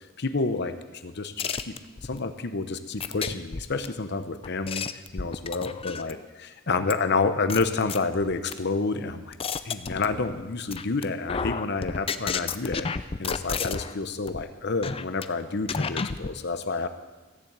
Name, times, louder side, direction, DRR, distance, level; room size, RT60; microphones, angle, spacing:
voice 1, 0.2-0.7 1.0-1.8 2.0-4.8 5.1-9.3 9.6-12.9 13.2-16.9, left 3 dB, 55° left, 10 dB, 0.9 m, -29 dB
sound 1, 1.4-2.2 3.0-3.9 4.4-6.2 6.9-7.0 7.5-8.5 9.0-10.4 10.7-11.0 11.3-14.0 14.3-14.4 14.8-15.3 15.7-16.3, left 5 dB, 30° left, 0.5 m, -31 dB
14.5 x 7.1 x 8.1 m, 1.2 s
head